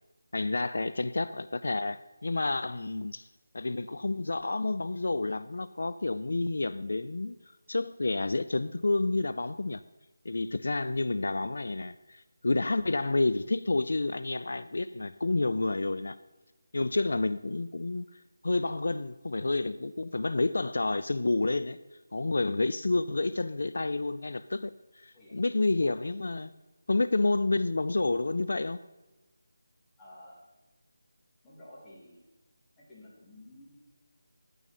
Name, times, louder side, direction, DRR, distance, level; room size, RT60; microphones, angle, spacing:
voice 1, 0.3-3.3 3.5-7.4 7.7-9.8 10.3-16.2 16.7-21.8 22.1-26.5 26.9-28.8, left 2 dB, 65° left, 0.4 m, -29 dB
voice 2, 30.0-30.4 31.4-32.2 32.8-33.8, left 1 dB, 10° left, 2.3 m, -52 dB
10.5 x 9.0 x 4.2 m
figure-of-eight pair, 175°, 0 cm